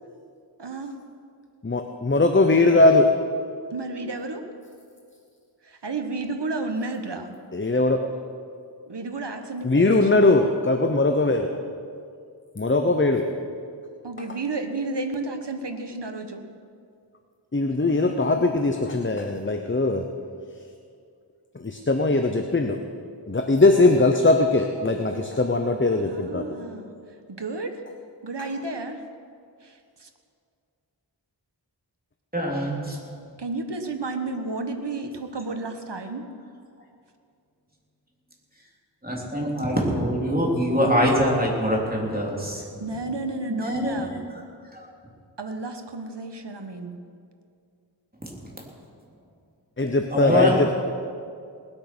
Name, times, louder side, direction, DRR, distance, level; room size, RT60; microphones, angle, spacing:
voice 1, 0.6-0.9 3.7-4.4 5.6-7.4 8.9-10.4 14.0-16.4 18.1-18.2 26.0-26.9 27.4-27.8 28.2-29.0 29.6-30.1 33.4-35.1 35.3-36.2 42.8-44.2 45.4-47.0, right 3 dB, 70° right, 6 dB, 1.3 m, -32 dB
voice 2, 1.6-3.2 7.5-8.1 9.6-11.5 12.6-13.3 17.5-20.0 21.5-22.8 23.3-26.5 49.8-50.7, left 2 dB, 25° left, 5 dB, 0.8 m, -20 dB
voice 3, 32.3-33.0 39.0-42.6 42.9-43.0 43.5-44.0 44.8-44.9 48.2-48.7 50.1-50.7, equal, 20° right, -2 dB, 3.4 m, -24 dB
19.5 x 8.8 x 6.1 m, 2.3 s
wide cardioid pair, 45°, 43 cm